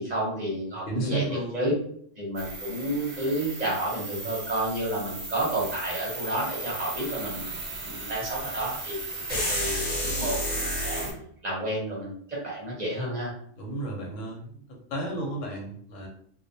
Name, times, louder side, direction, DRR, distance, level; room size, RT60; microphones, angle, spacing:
voice 1, 0.0-1.2 1.5-1.7 2.2-7.4 7.8-9.0 9.3-11.1 11.4-13.3, right 1 dB, 40° right, -5 dB, 0.7 m, -30 dB
voice 2, 0.9-1.7 13.6-14.5 14.9-16.1, right 2 dB, 85° left, 0 dB, 1.1 m, -32 dB
sound 1, 2.4-11.1, right 3 dB, 75° right, 0.3 m, -37 dB
sound 2, 9.3-11.1, left 1 dB, 50° left, 0.9 m, -29 dB
2.2 x 2.2 x 2.6 m, 0.62 s
omnidirectional pair, 1.3 m